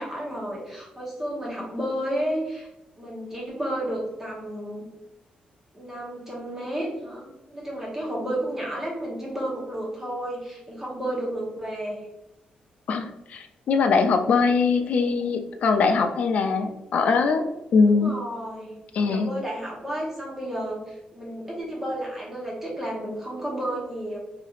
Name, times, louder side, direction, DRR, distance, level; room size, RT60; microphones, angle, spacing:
voice 1, 0.0-2.7 3.0-4.9 5.7-12.1 17.9-24.2, right 1 dB, 10° right, -4 dB, 0.9 m, -32 dB
voice 2, 12.9-17.4 17.7-18.1 18.9-19.3, left 4 dB, 55° left, 6 dB, 0.3 m, -22 dB
3.2 x 2.8 x 2.4 m, 0.91 s
wide cardioid pair, 165°, 3 cm